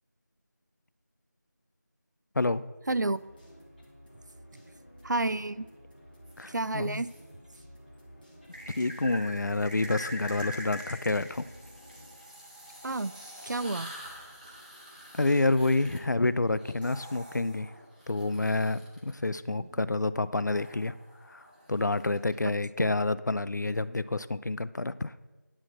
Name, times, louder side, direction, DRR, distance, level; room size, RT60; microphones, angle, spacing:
voice 1, 2.4-2.7 6.4-7.0 8.8-11.5 15.1-17.7 18.1-20.9 21.3-21.4 21.7-25.1, left 2 dB, 75° left, 16 dB, 0.5 m, -28 dB
sound 1, 2.8-12.9 13.3-13.4 13.8-14.4, equal, 30° left, 2.3 m, -54 dB
voice 2, 2.9-3.2 5.0-5.7 6.5-7.1 12.8-13.1 13.4-13.9 19.5-19.9 22.4-23.0, right 2 dB, 80° right, 16 dB, 0.5 m, -31 dB
sound 2, 6.2-7.2 8.5-19.1 20.5-22.3, equal, 30° right, 1.7 m, -45 dB
10.5 x 4.8 x 7.5 m, 1.2 s
figure-of-eight pair, 180°, 10 cm